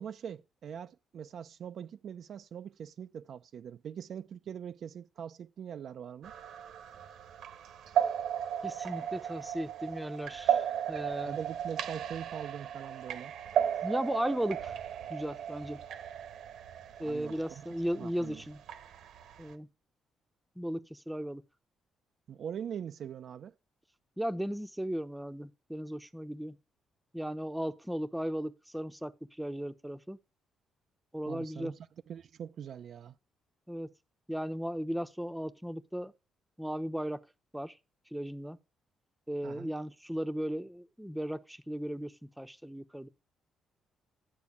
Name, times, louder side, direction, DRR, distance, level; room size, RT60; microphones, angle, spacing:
voice 1, 0.0-6.3 11.3-13.3 17.0-17.6 18.0-18.4 22.3-23.5 31.3-33.2 39.4-39.7, right 8 dB, 60° right, 0.5 m, -42 dB
sound 1, 6.2-19.5, right 9 dB, 75° right, 1.2 m, -35 dB
voice 2, 8.6-11.4 13.8-14.7 15.1-15.8 17.0-18.6 19.4-19.7 20.6-21.4 24.2-26.6 27.1-29.1 29.4-30.2 31.1-31.7 33.7-33.9 34.3-36.1 36.6-37.2 37.5-37.8 38.1-38.6 39.3-43.1, equal, 5° right, 0.9 m, -36 dB
12.0 x 4.6 x 8.5 m
cardioid pair, 90°, 0 cm